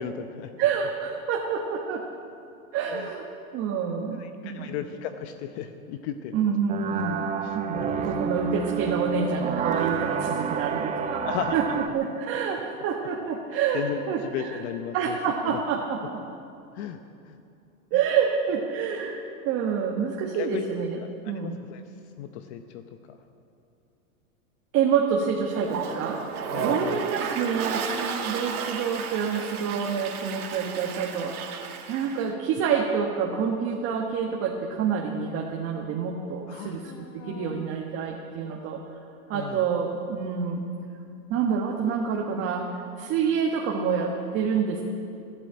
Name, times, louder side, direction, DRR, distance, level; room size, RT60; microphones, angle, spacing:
voice 1, 0.0-0.6 2.9-3.1 4.1-6.5 7.4-8.0 11.2-11.6 13.7-15.2 15.4-15.6 16.7-17.4 17.9-18.0 20.3-21.8 22.2-23.2 26.5-27.0 36.5-37.7 39.3-39.6, left 9 dB, 50° left, 8 dB, 0.9 m, -36 dB
voice 2, 0.6-2.0 2.7-3.2 3.5-4.7 6.3-13.8 14.1-14.6 14.9-16.2 17.9-21.0 21.2-21.6 24.7-26.2 26.6-31.5 31.9-36.9 37.3-38.8 39.3-40.7 41.3-44.8, right 6 dB, 30° right, 0 dB, 1.4 m, -27 dB
sound 1, 6.7-11.9, right 7 dB, 15° right, 0.6 m, -29 dB
Toilet flush, 25.5-32.3, right 6 dB, 85° right, 2.3 m, -33 dB
13.0 x 12.5 x 8.7 m, 2.6 s
supercardioid pair, 140°, 43 cm